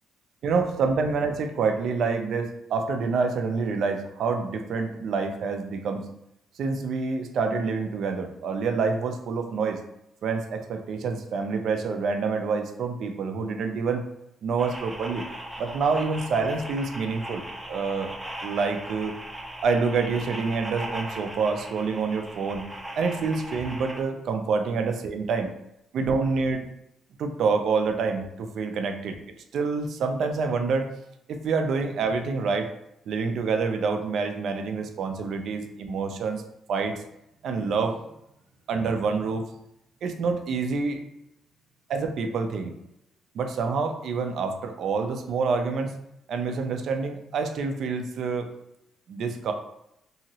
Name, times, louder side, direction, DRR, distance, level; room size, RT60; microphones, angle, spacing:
voice 1, 0.4-6.0 6.6-9.8 10.2-14.0 14.4-15.3 15.6-18.1 18.4-19.2 19.6-22.7 23.0-25.5 25.9-26.7 27.2-29.2 29.5-30.9 31.3-32.7 33.1-36.4 36.7-37.0 37.4-38.0 38.7-39.4 40.0-41.0 41.9-42.7 43.3-45.9 46.3-48.5 49.1-49.5, right 4 dB, 70° right, 5 dB, 0.4 m, -27 dB
sound 1, 14.6-24.0, right 1 dB, 10° right, 0.5 m, -38 dB
2.9 x 2.7 x 2.8 m, 0.81 s
cardioid pair, 90°, 0 cm